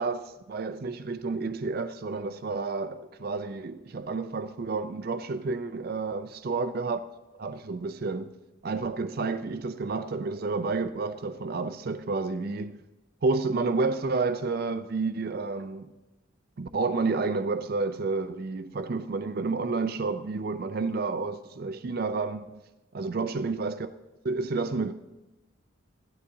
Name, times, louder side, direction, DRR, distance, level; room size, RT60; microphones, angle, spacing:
voice 1, 0.0-7.0 7.4-8.3 8.6-12.8 13.2-15.9 16.6-22.6 22.9-23.9 24.2-24.9, right 3 dB, 45° right, 0.4 m, -30 dB
15.5 x 11.0 x 2.7 m
head